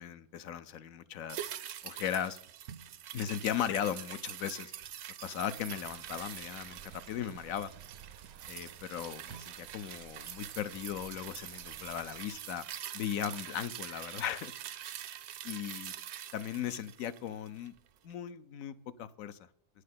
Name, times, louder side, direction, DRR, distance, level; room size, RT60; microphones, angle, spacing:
voice 1, 0.0-1.5 1.8-2.4 3.1-4.7 5.2-7.7 8.5-12.6 12.9-14.5 15.5-15.9 16.3-17.7 18.0-19.4, left 9 dB, 70° left, 13 dB, 1.0 m, -37 dB
sound 1, 1.3-17.8 18.1-18.2, right 10 dB, 65° right, 0.7 m, -45 dB
sound 2, 5.6-12.4, right 8 dB, 80° right, 1.1 m, -54 dB
10.0 x 6.5 x 7.6 m, 0.63 s
omnidirectional pair, 1.5 m